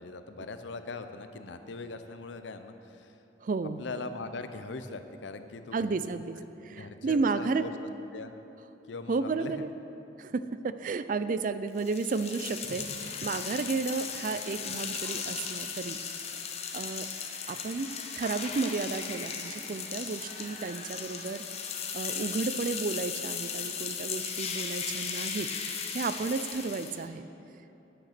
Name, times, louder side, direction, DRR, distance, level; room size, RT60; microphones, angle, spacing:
voice 1, 0.0-3.1 3.8-5.9 6.7-7.7 8.1-8.3 8.9-9.6, left 3 dB, 80° left, 9 dB, 0.6 m, -41 dB
voice 2, 3.4-3.8 5.7-6.4 6.6-7.6 9.1-9.7 10.2-16.0 16.7-17.1 17.5-17.9 18.2-21.4 21.9-27.2, right 4 dB, 45° right, 12 dB, 0.4 m, -32 dB
sound 1, 11.8-27.1, left 6 dB, 35° left, 0.8 m, -37 dB
9.2 x 8.8 x 5.9 m, 3.0 s
head